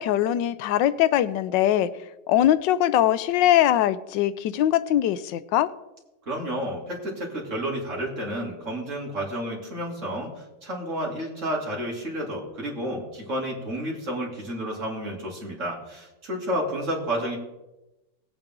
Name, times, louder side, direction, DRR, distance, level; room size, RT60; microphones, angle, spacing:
voice 1, 0.0-1.9 2.3-5.7, left 12 dB, 90° left, 15 dB, 1.3 m, -21 dB
voice 2, 6.3-10.3 10.6-17.4, equal, 40° right, -2 dB, 3.1 m, -31 dB
18.5 x 8.9 x 3.7 m, 0.98 s
omnidirectional pair, 1.9 m